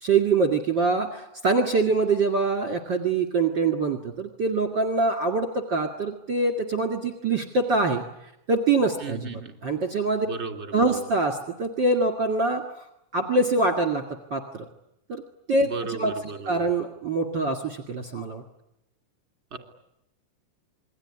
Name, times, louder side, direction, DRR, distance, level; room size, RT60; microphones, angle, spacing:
voice 1, 0.0-8.0 8.5-10.3 10.7-12.6 13.1-14.1 14.3-14.7 15.1-15.2 15.5-18.4, right 3 dB, 40° right, 5 dB, 2.4 m, -24 dB
voice 2, 9.0-9.5 10.3-11.1 15.6-16.6 19.5-19.6, right 4 dB, 20° right, 5 dB, 2.8 m, -35 dB
28.0 x 22.0 x 9.9 m, 0.83 s
omnidirectional pair, 3.6 m